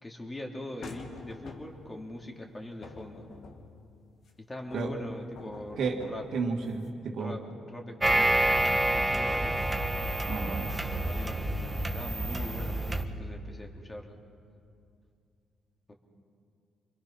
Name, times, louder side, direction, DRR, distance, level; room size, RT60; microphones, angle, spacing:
voice 1, 0.0-3.3 4.4-6.3 7.2-9.6 10.8-14.2 15.9-16.0, left 1 dB, 20° left, 0 dB, 3.0 m, -42 dB
sound 1, 0.8-2.0 2.8-4.3 4.7-6.9, left 3 dB, 65° left, 2.4 m, -48 dB
voice 2, 6.3-7.3 10.3-10.7, right 4 dB, 70° right, 2 dB, 2.7 m, -31 dB
sound 2, 8.0-13.0, right 1 dB, 15° right, 1.5 m, -28 dB
27.5 x 22.0 x 5.8 m, 2.4 s
cardioid pair, 90°, 0 cm